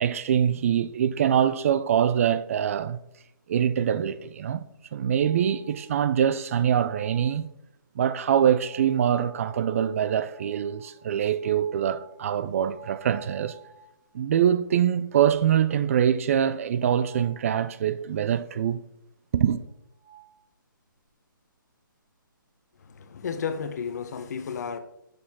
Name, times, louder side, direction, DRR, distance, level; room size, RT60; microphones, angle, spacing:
voice 1, 0.0-3.0 3.5-4.6 4.9-7.5 8.0-13.6 14.1-18.8 19.3-19.6, right 9 dB, 40° right, 0.4 m, -24 dB
sound 1, 4.9-6.0 6.5-7.4 8.6-14.2 14.6-14.7 15.1-15.2 16.8-17.4 19.6-19.7 20.0-20.4, right 5 dB, 25° right, 2.7 m, -51 dB
voice 2, 22.8-24.8, left 6 dB, 50° left, 0.8 m, -33 dB
6.9 x 6.5 x 3.6 m
hypercardioid pair, 150°, 11 cm